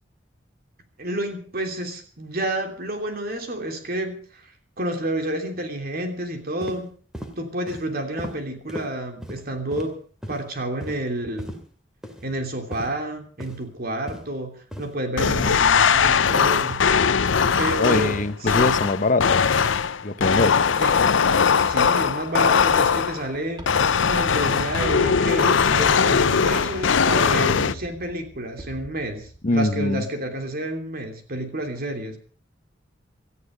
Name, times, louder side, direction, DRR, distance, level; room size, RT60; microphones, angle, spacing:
voice 1, 1.0-6.9 7.4-10.0 10.3-11.5 12.2-16.8 17.6-18.8 20.8-21.2 21.6-32.2, right 1 dB, 50° right, 5 dB, 3.1 m, -30 dB
sound 1, 6.6-6.8 7.1-7.3 7.7-7.8 8.2-8.4 8.7-8.9 9.2-9.4 9.7-9.9 10.2-10.4 10.8-11.0 11.4-11.6 12.0-12.2 12.7-12.9 13.4-13.6 14.1-14.3 14.7-14.9 15.4-15.6 16.0-16.2 16.7-16.9 17.4-17.7 18.1-18.3 18.7-18.9, equal, 5° right, 2.5 m, -35 dB
sound 2, 15.2-23.3 23.7-27.7, left 6 dB, 75° left, 0.6 m, -20 dB
voice 2, 17.8-19.4 20.0-20.6 29.4-30.0, left 2 dB, 40° left, 12 dB, 0.9 m, -23 dB
sound 3, 21.6-29.4, right 1 dB, 25° right, 2.7 m, -43 dB
18.0 x 13.5 x 5.2 m, 0.43 s
head